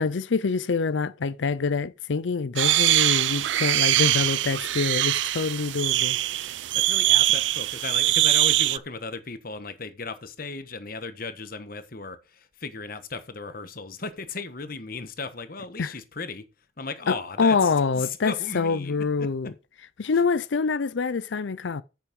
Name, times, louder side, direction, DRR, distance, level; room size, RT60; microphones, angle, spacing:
voice 1, 0.0-6.2 15.8-15.9 17.1-19.5 20.0-21.8, left 4 dB, 85° left, 0.6 m, -25 dB
sound 1, 2.6-8.8, right 14 dB, 75° right, 0.4 m, -22 dB
voice 2, 6.5-16.5 16.8-19.3, left 4 dB, 50° left, 1.4 m, -36 dB
9.5 x 6.5 x 5.4 m
head